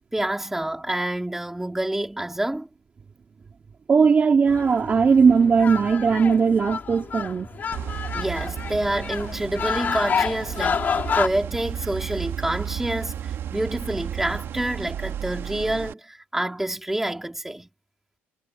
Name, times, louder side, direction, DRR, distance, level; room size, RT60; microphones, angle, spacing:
voice 1, 0.1-2.7 8.1-17.7, right 1 dB, 5° right, 4.6 m, -28 dB
voice 2, 3.9-7.5, right 5 dB, 30° right, 2.9 m, -18 dB
sound 1, 4.5-11.3, left 6 dB, 40° left, 2.8 m, -29 dB
sound 2, 7.7-15.9, right 10 dB, 60° right, 2.3 m, -33 dB
cardioid pair, 115°, 5 cm